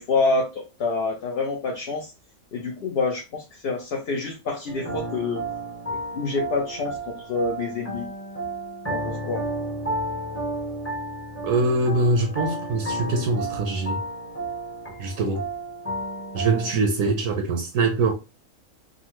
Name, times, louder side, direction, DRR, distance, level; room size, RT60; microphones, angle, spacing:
voice 1, 0.0-2.1 2.5-5.4 6.1-8.1 8.9-9.4, left 3 dB, 60° left, 0.7 m, -27 dB
sound 1, 4.7-16.7, right 1 dB, 10° left, 0.7 m, -32 dB
voice 2, 11.4-14.0 15.0-15.4 16.3-18.1, right 3 dB, 75° right, 1.0 m, -23 dB
3.7 x 2.0 x 2.9 m
omnidirectional pair, 1.4 m